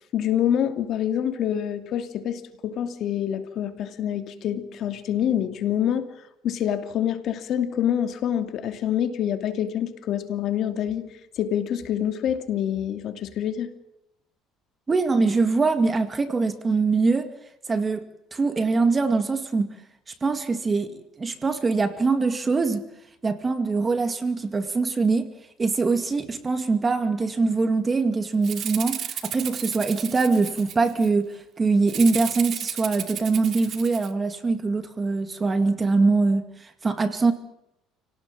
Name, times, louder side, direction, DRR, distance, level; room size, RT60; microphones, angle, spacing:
voice 1, 0.1-6.1 6.4-11.1 11.4-13.7, left 10 dB, 50° left, 2.8 m, -26 dB
voice 2, 14.9-17.3 17.7-19.7 20.2-22.8 23.2-25.3 25.6-37.3, right 3 dB, 20° right, 2.2 m, -23 dB
Rattle (instrument), 28.4-31.1 31.9-34.1, right 9 dB, 45° right, 2.2 m, -33 dB
29.5 x 18.5 x 7.5 m
cardioid pair, 145°, 0 cm